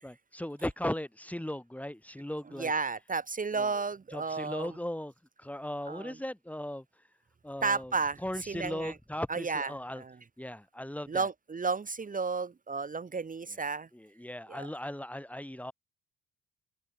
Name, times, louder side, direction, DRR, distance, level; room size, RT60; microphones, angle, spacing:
voice 1, 0.0-2.7 3.5-3.8 4.1-5.1 5.4-6.9 7.4-10.0 10.4-11.3 13.9-15.7, left 1 dB, 5° left, 7.2 m, -38 dB
voice 2, 2.6-4.7 5.9-6.1 7.6-8.2 8.5-8.9 9.3-10.2 11.1-13.9 14.5-14.7, right 4 dB, 25° right, 1.1 m, -33 dB
cardioid pair, 90°, 30 cm